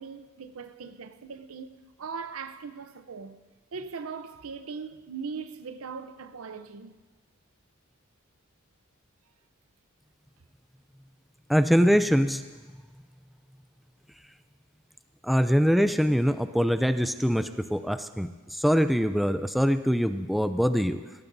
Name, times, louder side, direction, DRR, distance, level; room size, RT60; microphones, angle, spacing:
voice 1, 0.0-3.4 3.7-7.0, right 5 dB, 80° right, 0.7 m, -40 dB
voice 2, 11.5-12.4 15.2-21.0, equal, ahead, 0.4 m, -23 dB
21.5 x 18.0 x 2.7 m
head